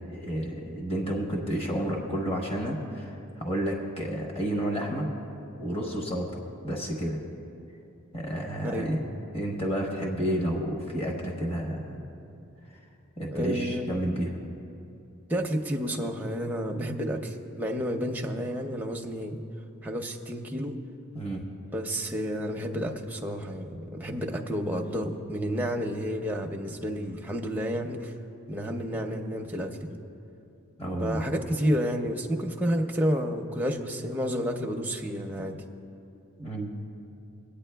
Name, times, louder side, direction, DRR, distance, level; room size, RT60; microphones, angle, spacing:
voice 1, 0.1-5.1 5.6-7.2 8.1-9.0 9.3-12.0 13.2-14.4 21.1-21.4 30.8-31.2 36.4-36.7, equal, 25° left, -1 dB, 1.0 m, -30 dB
voice 2, 13.3-14.0 15.3-19.4 19.8-20.8 21.7-28.1 28.5-29.9 31.0-35.6, equal, 10° right, 1 dB, 0.5 m, -30 dB
24.0 x 8.7 x 2.2 m, 2.7 s
head